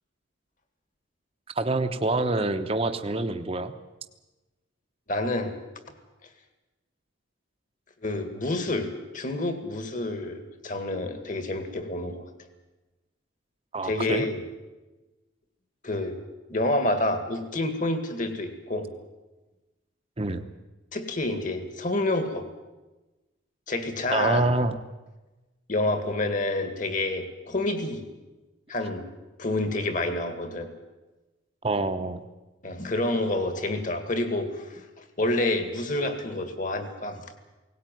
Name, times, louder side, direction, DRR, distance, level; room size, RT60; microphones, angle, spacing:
voice 1, 1.6-3.7 13.7-14.2 20.2-20.4 24.1-24.8 31.6-32.2, right 2 dB, 30° right, 7 dB, 0.9 m, -26 dB
voice 2, 5.1-5.5 8.0-12.2 13.8-14.4 15.8-16.2 16.5-18.9 20.9-22.5 23.7-24.5 25.7-28.1 28.7-29.1 29.4-30.7 32.6-37.2, left 2 dB, 40° left, 8 dB, 2.1 m, -28 dB
18.0 x 17.5 x 9.2 m, 1.1 s
head